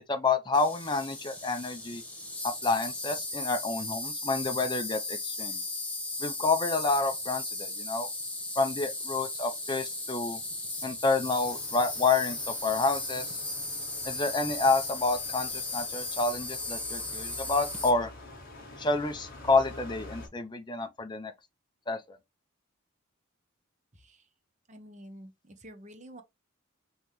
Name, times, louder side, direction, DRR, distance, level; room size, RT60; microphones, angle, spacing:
voice 1, 0.1-2.0 2.4-5.6 6.2-8.1 8.6-10.4 10.8-13.4 14.0-18.1 18.8-21.3 21.9-22.2, left 3 dB, 20° left, 0.7 m, -29 dB
Insect, 0.5-17.9, left 2 dB, 5° left, 1.1 m, -36 dB
sound 1, 11.4-20.3, left 2 dB, 45° left, 1.6 m, -48 dB
voice 2, 23.9-24.3 24.7-26.2, equal, 35° right, 0.9 m, -49 dB
5.6 x 3.0 x 3.1 m
head